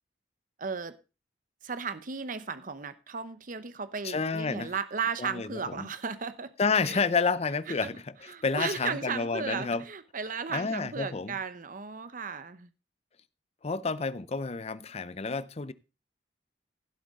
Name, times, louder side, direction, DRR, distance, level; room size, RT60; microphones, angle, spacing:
voice 1, 0.6-0.9 1.6-6.5 6.8-7.0 7.8-7.9 8.3-12.7, right 5 dB, 45° right, 0.8 m, -35 dB
voice 2, 4.0-4.7 5.2-5.9 6.6-9.8 10.5-11.4 13.6-15.7, left 4 dB, 35° left, 0.6 m, -30 dB
16.0 x 8.0 x 3.7 m
head